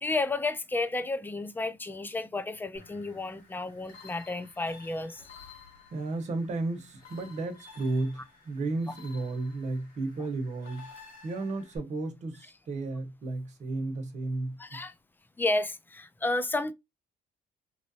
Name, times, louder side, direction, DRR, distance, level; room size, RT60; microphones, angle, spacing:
voice 1, 0.0-5.5 14.6-14.9 15.4-16.7, left 2 dB, 10° left, 0.5 m, -32 dB
sound 1, 2.7-11.8, left 4 dB, 60° left, 1.7 m, -53 dB
voice 2, 5.9-10.9 11.2-14.8, right 2 dB, 45° right, 1.1 m, -33 dB
3.0 x 2.5 x 2.7 m
cardioid pair, 110°, 17 cm